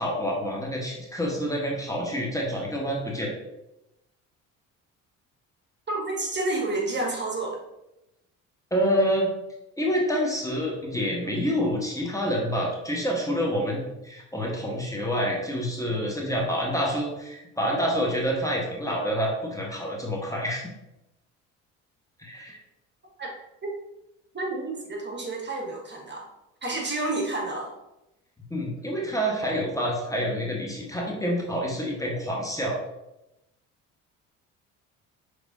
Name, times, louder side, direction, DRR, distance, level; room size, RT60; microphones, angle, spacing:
voice 1, 0.0-3.3 8.7-9.3 9.8-20.7 22.2-22.6 28.5-32.8, equal, 10° left, -3 dB, 1.3 m, -27 dB
voice 2, 5.9-7.6 23.2-23.3 24.3-26.3 26.6-27.7, right 2 dB, 30° right, -1 dB, 1.3 m, -30 dB
5.8 x 3.3 x 2.7 m, 0.92 s
hypercardioid pair, 60°, 36 cm